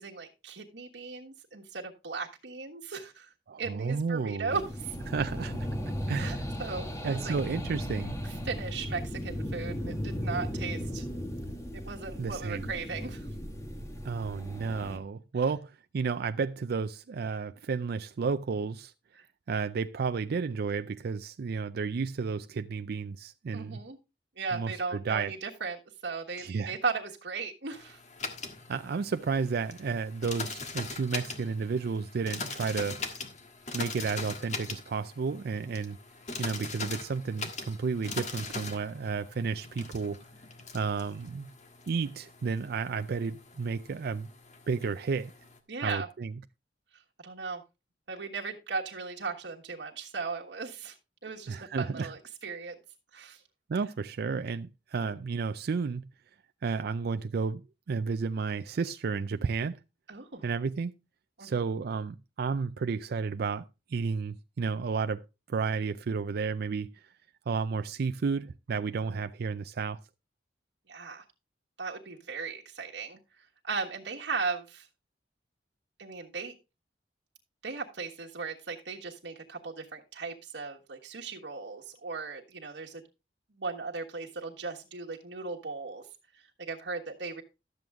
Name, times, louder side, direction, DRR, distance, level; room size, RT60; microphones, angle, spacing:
voice 1, 0.0-3.3 3.6-5.0 6.2-7.3 8.2-11.0 11.7-13.3 19.1-19.2 23.5-24.0 24.4-28.0 45.7-46.1 47.2-47.6 48.1-51.0 51.2-52.7 53.1-53.4 60.1-60.4 61.4-61.6 70.9-71.2 71.8-73.2 73.6-74.9 76.0-76.5 77.6-83.0 83.6-86.1 86.7-87.4, right 4 dB, 80° right, 1.4 m, -37 dB
voice 2, 3.5-4.6 5.1-5.7 6.1-6.5 7.0-8.2 12.2-12.7 14.0-18.9 19.5-23.8 24.5-25.3 26.4-26.8 28.7-33.0 33.7-36.0 36.4-40.2 40.7-41.5 41.9-44.3 44.7-45.3 45.8-46.3 51.5-52.1 53.7-56.1 56.6-59.8 60.4-60.9 61.4-63.6 63.9-65.2 65.5-67.1 67.5-70.0, right 5 dB, 60° right, 0.4 m, -32 dB
sound 1, 4.5-15.0, equal, 20° left, 1.5 m, -36 dB
sound 2, 27.7-45.6, left 4 dB, 45° left, 1.5 m, -41 dB
12.0 x 7.7 x 3.5 m
head